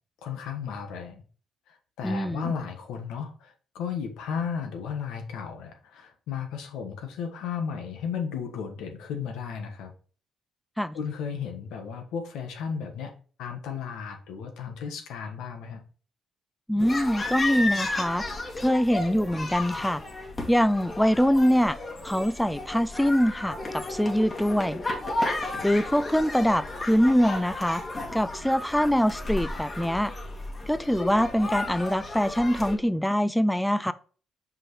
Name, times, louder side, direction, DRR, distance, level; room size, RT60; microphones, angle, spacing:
voice 1, 0.2-1.2 1.7-9.9 10.9-13.1 13.4-15.8, left 7 dB, 90° left, 1.4 m, -34 dB
voice 2, 2.0-2.5 10.8-11.0 16.7-18.2 18.6-20.0 20.5-21.8 22.0-24.8 25.6-27.8 28.1-30.1 30.7-33.9, equal, 5° left, 0.4 m, -24 dB
sound 1, 16.8-32.8, left 2 dB, 30° left, 1.9 m, -33 dB
5.6 x 5.4 x 3.2 m
cardioid pair, 90°, 0 cm